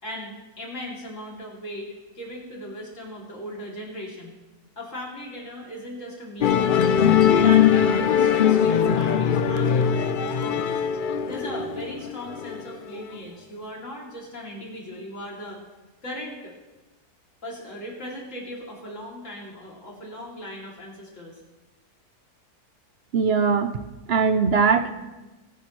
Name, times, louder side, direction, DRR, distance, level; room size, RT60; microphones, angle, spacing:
voice 1, 0.0-4.4 4.8-7.1 7.3-10.8 11.3-15.6 16.0-16.5 17.4-21.4, equal, 55° left, -2 dB, 3.2 m, -38 dB
Musical instrument, 6.4-13.0, left 8 dB, 85° left, 0.4 m, -21 dB
voice 2, 23.1-23.8 24.1-24.9, right 5 dB, 55° right, 9 dB, 0.8 m, -20 dB
21.5 x 10.0 x 3.1 m, 1.1 s
omnidirectional pair, 1.6 m